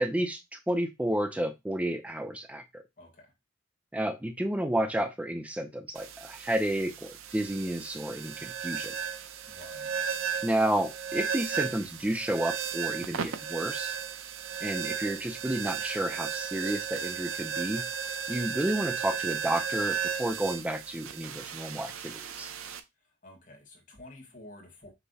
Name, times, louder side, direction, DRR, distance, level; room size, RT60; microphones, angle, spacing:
voice 1, 0.0-2.8 3.9-8.9 10.4-13.9 14.6-17.8 18.3-22.5, right 1 dB, 5° right, 0.4 m, -31 dB
voice 2, 3.0-3.3 9.5-9.9 23.2-24.9, left 1 dB, 40° left, 1.4 m, -50 dB
sound 1, 5.9-22.8, right 7 dB, 85° right, 0.5 m, -35 dB
5.5 x 2.0 x 4.0 m
head